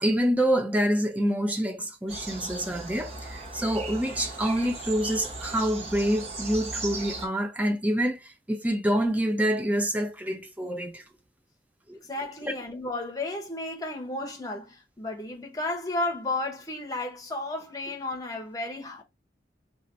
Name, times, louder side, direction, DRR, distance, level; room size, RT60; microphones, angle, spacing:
voice 1, 0.0-11.0 11.9-12.0 12.4-12.5, equal, 10° right, 0.6 m, -27 dB
sound 1, 2.1-7.3, right 2 dB, 40° right, 0.9 m, -37 dB
voice 2, 12.1-19.0, left 2 dB, 20° left, 0.9 m, -33 dB
2.7 x 2.5 x 4.2 m
head